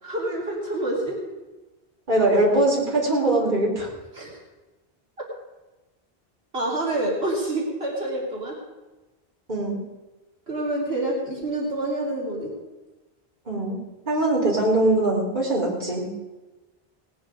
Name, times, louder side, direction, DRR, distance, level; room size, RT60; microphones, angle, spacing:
voice 1, 0.0-1.2 4.2-4.3 6.5-8.5 10.5-12.5, right 1 dB, 75° right, -4 dB, 3.5 m, -27 dB
voice 2, 2.1-3.9 9.5-9.8 13.5-13.8 14.1-16.1, right 1 dB, 45° right, -5 dB, 3.7 m, -21 dB
19.0 x 9.4 x 5.1 m, 1.1 s
omnidirectional pair, 1.1 m